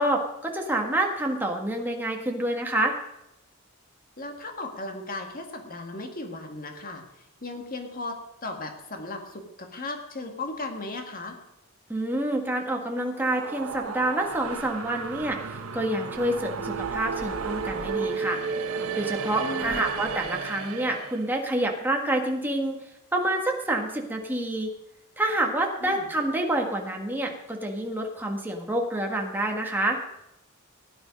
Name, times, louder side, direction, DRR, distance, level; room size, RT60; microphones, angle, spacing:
voice 1, 0.0-2.9 11.9-18.4 19.0-22.8 23.1-24.7 25.2-30.0, right 1 dB, 10° right, 1 dB, 1.7 m, -27 dB
voice 2, 4.2-7.1 7.4-11.4 19.4-19.8 25.8-26.1, left 2 dB, 40° left, 4 dB, 1.9 m, -36 dB
sound 1, 12.9-21.3, right 5 dB, 90° right, 1.2 m, -33 dB
17.0 x 10.5 x 5.3 m, 0.87 s
head